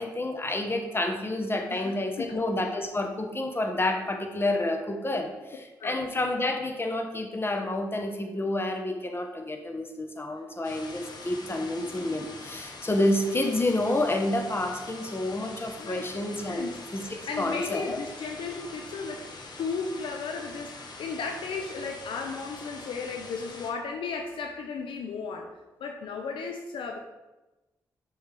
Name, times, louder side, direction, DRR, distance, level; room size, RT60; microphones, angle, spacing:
voice 1, 0.0-16.7 16.9-18.0, left 1 dB, 25° left, 5 dB, 1.0 m, -29 dB
sound 1, 10.6-23.7, left 3 dB, 50° left, 1.0 m, -44 dB
voice 2, 16.5-19.3 19.6-27.0, left 4 dB, 70° left, 4 dB, 0.5 m, -35 dB
6.3 x 4.7 x 3.4 m, 1.1 s
hypercardioid pair, 40°, 9 cm